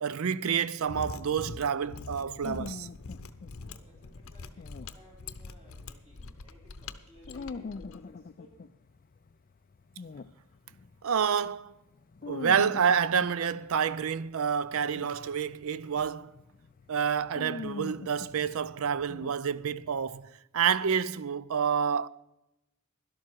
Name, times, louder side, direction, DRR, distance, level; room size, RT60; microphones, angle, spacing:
voice 1, 0.0-2.9 11.0-11.7 12.3-16.3 16.9-22.1, right 7 dB, 65° right, 0.4 m, -28 dB
Mechanisms, 0.8-8.0, left 4 dB, 65° left, 0.7 m, -44 dB
sound 1, 2.4-11.0 11.5-20.0, left 4 dB, 40° left, 0.4 m, -44 dB
voice 2, 3.6-7.7 8.1-8.6, equal, 30° right, 4.0 m, -58 dB
12.0 x 12.0 x 4.6 m
head